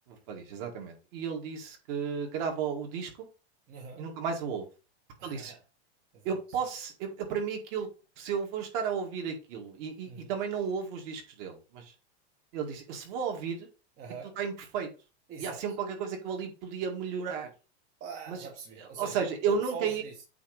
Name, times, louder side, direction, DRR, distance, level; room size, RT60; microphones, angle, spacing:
voice 1, 0.1-3.3 4.0-4.7 5.2-5.5 6.2-7.9 8.2-11.9 12.5-13.7 14.4-14.9 15.4-17.5 18.3-18.4 19.0-20.0, right 6 dB, 45° right, 2 dB, 1.9 m, -33 dB
voice 2, 3.7-4.0 5.2-5.6 6.1-6.3 10.1-10.3 14.0-14.3 15.3-15.7 18.0-20.2, right 5 dB, 25° right, 0 dB, 1.0 m, -43 dB
8.3 x 3.0 x 4.9 m, 0.32 s
supercardioid pair, 165°, 32 cm